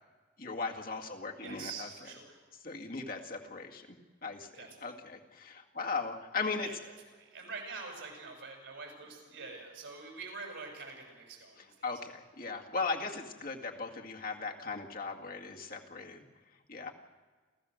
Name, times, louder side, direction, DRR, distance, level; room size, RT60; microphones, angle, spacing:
voice 1, 0.4-1.9 2.6-6.7 11.6-16.2 16.7-16.9, left 4 dB, 50° left, 0 dB, 2.1 m, -38 dB
voice 2, 1.4-2.4 4.5-4.9 6.6-11.6, right 4 dB, 85° right, 2 dB, 6.8 m, -45 dB
29.0 x 15.0 x 6.5 m, 1.4 s
head